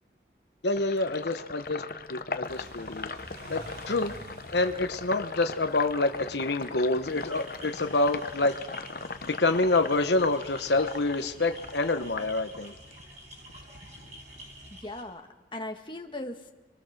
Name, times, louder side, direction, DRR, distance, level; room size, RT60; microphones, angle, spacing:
voice 1, 0.6-1.8 2.1-3.1 3.5-4.1 4.5-8.6 9.2-12.7, left 2 dB, 75° left, 7 dB, 1.0 m, -27 dB
Sink (filling or washing), 0.8-13.0 13.4-14.8, left 4 dB, 50° left, 0.8 m, -39 dB
Car / Idling / Accelerating revving vroom, 2.5-14.8, right 1 dB, 60° right, 3.1 m, -50 dB
sound 1, 7.1-15.0, equal, 40° right, 8.0 m, -50 dB
voice 2, 14.7-16.5, left 1 dB, 25° left, 3 dB, 1.7 m, -39 dB
29.5 x 23.0 x 6.6 m, 1.2 s
head